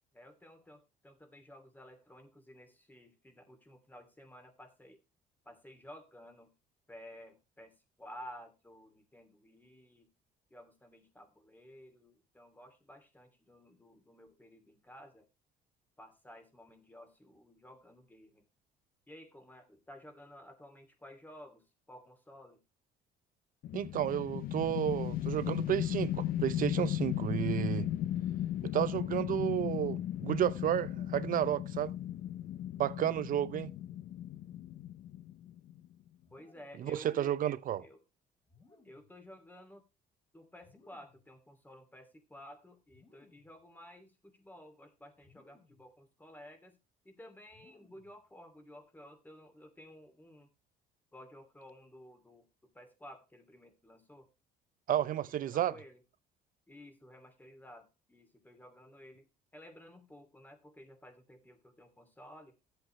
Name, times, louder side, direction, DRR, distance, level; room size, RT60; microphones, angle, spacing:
voice 1, 0.1-5.0 5.4-6.5 6.9-10.1 10.5-15.3 16.0-18.4 19.1-22.6 36.3-37.3 37.8-38.0 38.8-39.8 40.3-46.8 47.0-50.5 51.1-54.3 54.9-56.0 56.7-62.5, equal, 10° left, 2.7 m, -54 dB
sound 1, 23.6-35.9, left 12 dB, 60° left, 0.5 m, -36 dB
voice 2, 23.7-27.9 28.6-31.9 32.8-33.7 36.8-37.8 54.9-55.7, right 11 dB, 55° right, 0.8 m, -32 dB
sound 2, 36.2-36.9 38.4-39.2 40.6-41.3 42.8-43.6 45.2-45.9 47.5-48.2, left 4 dB, 30° left, 4.5 m, -64 dB
14.0 x 8.1 x 3.2 m
cardioid pair, 110°, 17 cm